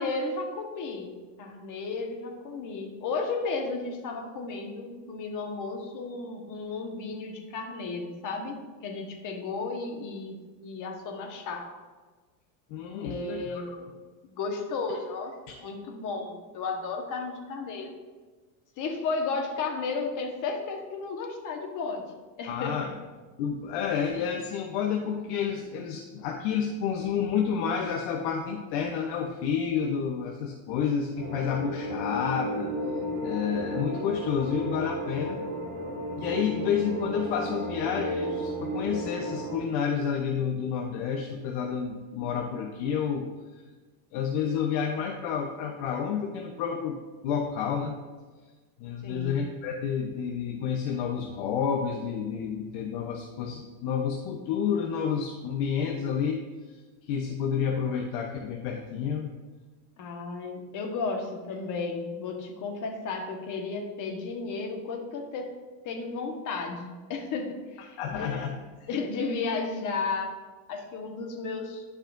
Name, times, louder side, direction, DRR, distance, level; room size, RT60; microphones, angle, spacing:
voice 1, 0.0-10.3 10.6-11.7 13.0-13.9 14.2-17.9 18.8-22.1 22.4-22.9 49.0-49.4 60.0-65.5 65.8-68.3 68.9-70.3 70.7-71.8, left 4 dB, 40° left, 3 dB, 1.3 m, -33 dB
voice 2, 12.7-13.6 22.5-22.9 23.4-32.7 33.2-35.4 36.2-43.3 44.1-47.0 47.2-48.0 48.8-56.4 57.1-59.3 68.0-68.9, left 7 dB, 60° left, 2 dB, 0.8 m, -30 dB
sound 1, 31.2-39.6, equal, 40° right, 2.2 m, -33 dB
11.5 x 4.9 x 2.6 m, 1.3 s
supercardioid pair, 125°, 45 cm